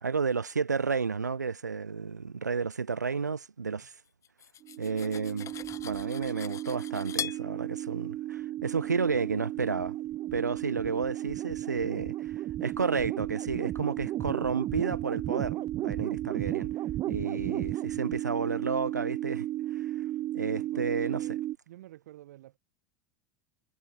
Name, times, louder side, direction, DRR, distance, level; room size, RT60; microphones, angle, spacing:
voice 1, 0.0-3.9 4.8-5.5 5.8-9.9 10.3-12.3 12.6-16.7 17.1-19.5 19.7-19.9 20.3-21.2, right 5 dB, 85° right, 0.7 m, -31 dB
Cutlery silverware, 4.2-7.4, left 9 dB, 35° left, 3.9 m, -40 dB
sound 1, 4.6-21.5, right 14 dB, 40° right, 1.3 m, -34 dB
voice 2, 20.4-21.4 21.7-22.6, right 15 dB, 65° right, 6.5 m, -52 dB
figure-of-eight pair, 75°, 9 cm